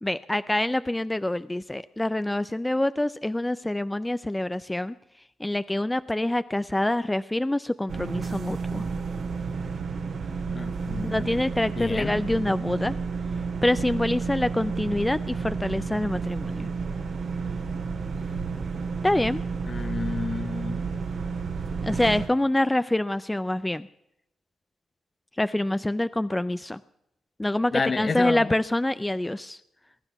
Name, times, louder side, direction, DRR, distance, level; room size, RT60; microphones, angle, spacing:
voice 1, 0.0-5.0 5.4-8.9 11.1-13.0 13.6-16.7 19.0-19.4 21.8-23.9 25.4-26.8 27.4-29.6, left 1 dB, 15° left, 0.5 m, -26 dB
sound 1, 7.9-22.3, right 5 dB, 65° right, 2.1 m, -31 dB
voice 2, 10.5-11.3 11.8-12.2 19.7-20.9 27.7-28.5, left 4 dB, 45° left, 0.9 m, -30 dB
21.0 x 10.5 x 6.0 m
supercardioid pair, 50°, 0 cm